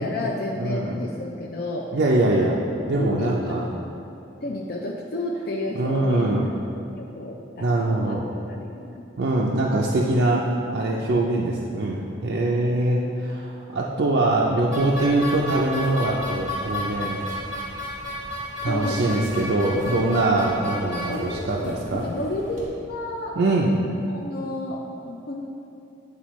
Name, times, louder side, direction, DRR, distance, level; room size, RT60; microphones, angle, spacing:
voice 1, 0.0-1.9 3.0-3.9 4.4-6.5 7.0-8.2 8.5-9.0 18.6-19.5 21.1-23.4 24.1-25.5, left 1 dB, 50° left, -1 dB, 0.4 m, -31 dB
voice 2, 0.6-0.9 1.9-2.6 2.8-3.7 5.8-6.5 7.6-8.3 9.2-10.5 10.7-17.2 18.6-22.0 23.4-23.7, right 2 dB, 60° right, -3 dB, 0.4 m, -23 dB
sound 1, 14.7-22.7, left 1 dB, 35° right, 1.4 m, -33 dB
8.8 x 4.2 x 3.1 m, 2.7 s
head